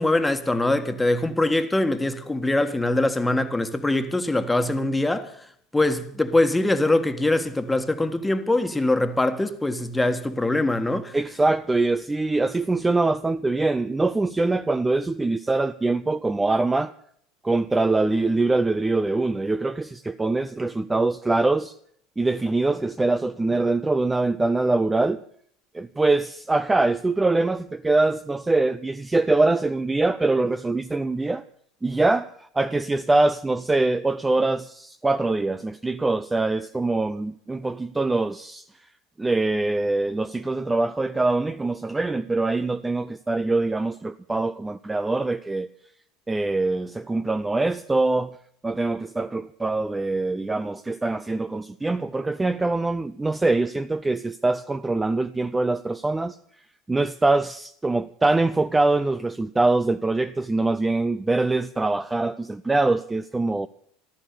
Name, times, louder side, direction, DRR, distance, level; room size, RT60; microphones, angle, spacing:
voice 1, 0.0-11.2, left 2 dB, 10° left, 1.7 m, -23 dB
voice 2, 11.1-16.9 17.4-21.7 22.2-25.2 25.7-31.4 31.8-38.6 39.2-45.7 46.3-48.3 48.6-56.4 56.9-63.7, right 2 dB, 15° right, 0.6 m, -23 dB
14.5 x 13.0 x 7.0 m
hypercardioid pair, 75°, 0 cm